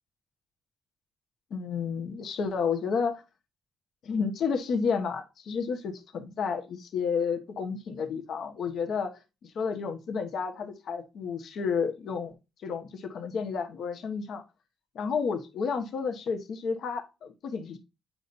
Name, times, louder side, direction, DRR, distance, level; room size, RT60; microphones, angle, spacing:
voice 1, 1.5-3.2 4.0-9.1 9.4-12.3 12.6-14.4 14.9-17.8, left 5 dB, 70° left, 1.3 m, -31 dB
8.7 x 5.5 x 2.6 m
cardioid pair, 90°, 0 cm